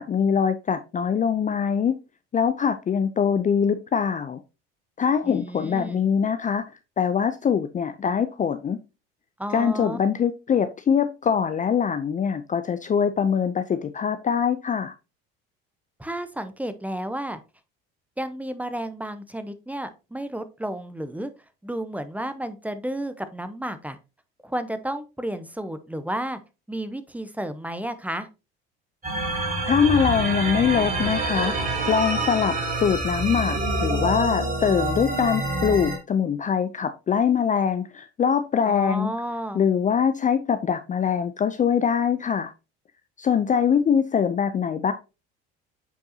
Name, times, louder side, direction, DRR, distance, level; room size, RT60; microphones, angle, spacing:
voice 1, 0.0-2.0 2.3-4.4 5.0-6.7 7.0-8.8 9.5-14.9 29.3-31.6 31.9-39.1 39.5-42.5 43.2-44.9, left 7 dB, 25° left, 0.5 m, -23 dB
voice 2, 5.2-6.0 9.4-10.0 16.0-17.4 18.2-21.3 21.6-24.0 24.4-26.4 26.7-28.3 38.7-39.6, right 1 dB, 5° right, 0.8 m, -32 dB
sound 1, 29.0-36.0, right 2 dB, 30° right, 3.6 m, -27 dB
8.0 x 4.5 x 2.8 m
hypercardioid pair, 80°, 30 cm